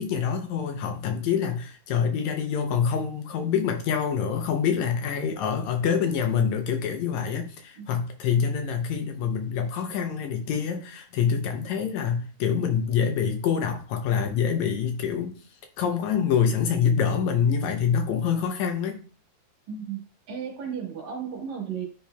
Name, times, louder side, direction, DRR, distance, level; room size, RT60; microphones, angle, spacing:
voice 1, 0.0-15.4 15.8-19.0, left 7 dB, 75° left, 5 dB, 1.9 m, -26 dB
voice 2, 19.7-21.9, right 7 dB, 70° right, 0 dB, 2.8 m, -34 dB
10.0 x 4.4 x 2.2 m, 0.39 s
omnidirectional pair, 3.6 m